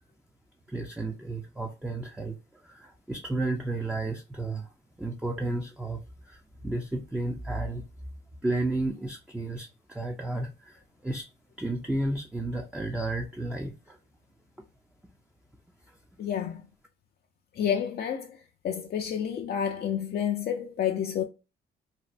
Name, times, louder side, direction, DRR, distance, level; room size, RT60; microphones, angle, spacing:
voice 1, 0.7-4.7 5.0-7.8 8.4-11.3 11.6-14.0, right 2 dB, 5° right, 0.5 m, -32 dB
voice 2, 16.2-16.6 17.6-18.4 18.6-21.2, left 9 dB, 50° left, 0.5 m, -29 dB
4.1 x 2.1 x 2.5 m
cardioid pair, 90°, 20 cm